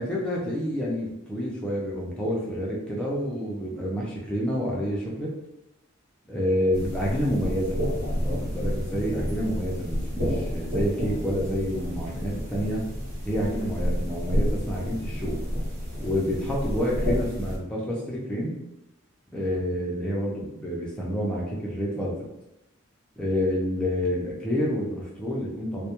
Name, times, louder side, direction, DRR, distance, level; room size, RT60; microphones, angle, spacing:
voice 1, 0.0-5.3 6.3-7.8 8.1-12.8 13.2-15.4 16.0-18.6 19.3-22.2 23.2-25.9, equal, 5° left, -5 dB, 0.5 m, -28 dB
sound 1, 6.7-17.6, equal, 55° right, 1.1 m, -30 dB
2.2 x 2.1 x 2.9 m, 0.90 s
head